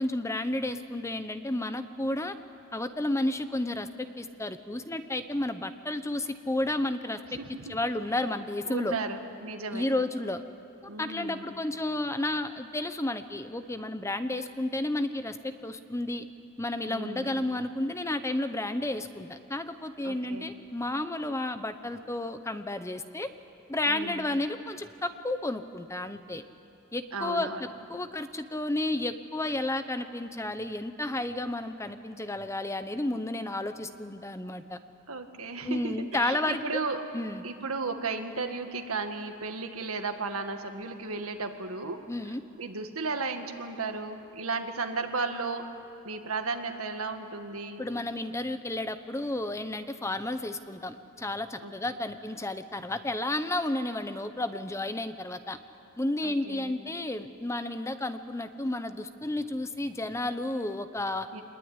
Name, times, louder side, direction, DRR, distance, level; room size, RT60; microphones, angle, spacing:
voice 1, 0.0-2.4 2.7-7.4 7.7-9.0 9.7-10.4 11.0-16.3 16.6-23.3 23.7-26.4 26.9-27.5 27.9-34.8 35.6-36.6 37.1-37.4 42.1-42.4 47.8-55.6 56.0-61.3, left 1 dB, 15° left, 10 dB, 0.8 m, -32 dB
voice 2, 7.3-7.8 8.7-9.9 10.9-11.5 16.9-17.5 20.0-20.5 23.9-24.3 27.1-27.6 35.1-37.0 37.4-45.7 46.0-47.9 51.6-51.7 56.2-56.8 61.3-61.4, right 4 dB, 70° right, 5 dB, 1.9 m, -35 dB
26.0 x 21.0 x 9.7 m, 2.7 s
head